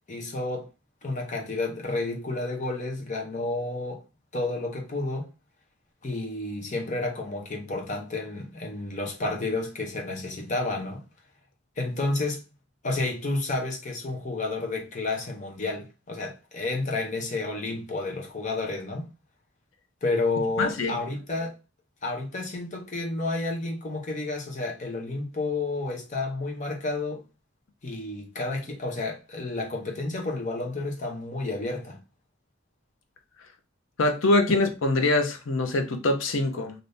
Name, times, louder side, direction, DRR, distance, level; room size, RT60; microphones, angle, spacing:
voice 1, 0.1-0.7 1.0-4.0 4.3-5.3 6.0-11.0 11.8-12.4 12.8-19.1 20.0-21.6 22.0-27.2 27.8-32.0, left 2 dB, 40° left, 0.8 m, -31 dB
voice 2, 20.6-21.0 34.0-36.7, left 2 dB, 75° left, 0.6 m, -24 dB
3.3 x 2.6 x 2.6 m
head